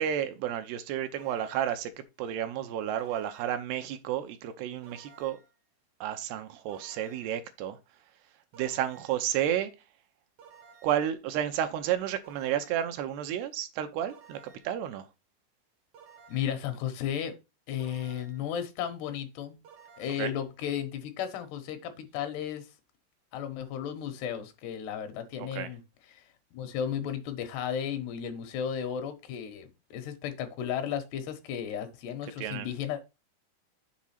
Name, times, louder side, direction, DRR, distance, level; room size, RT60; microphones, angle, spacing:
voice 1, 0.0-1.9 2.2-5.4 6.0-7.8 8.5-9.7 10.8-15.1 20.2-20.3 25.4-25.7 32.4-32.7, right 10 dB, 80° right, 2.7 m, -31 dB
sound 1, 1.2-1.9 3.0-3.7 4.8-5.6 6.7-7.4 8.5-9.3 10.4-11.1 12.2-13.0 14.1-14.8 15.9-16.7 17.8-18.5 19.6-20.4, right 6 dB, 65° right, 1.4 m, -55 dB
voice 2, 16.3-17.4 17.7-19.6 20.0-22.7 23.3-25.8 26.1-26.2 26.5-33.1, left 9 dB, 80° left, 3.1 m, -34 dB
7.4 x 3.7 x 5.8 m
omnidirectional pair, 4.8 m